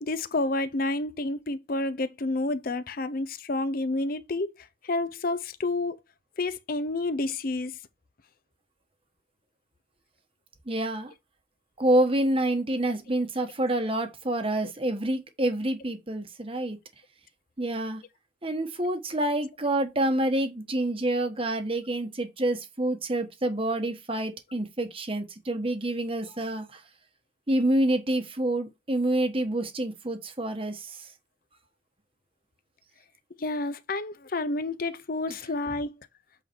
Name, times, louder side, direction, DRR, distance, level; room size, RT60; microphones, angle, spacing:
voice 1, 0.0-4.5 4.8-6.0 6.4-7.8 33.4-35.9, left 2 dB, 45° left, 0.6 m, -29 dB
voice 2, 10.7-11.1 11.8-16.8 17.6-18.0 18.4-26.8 27.5-31.1, right 1 dB, 30° right, 1.1 m, -27 dB
8.1 x 3.8 x 4.5 m
head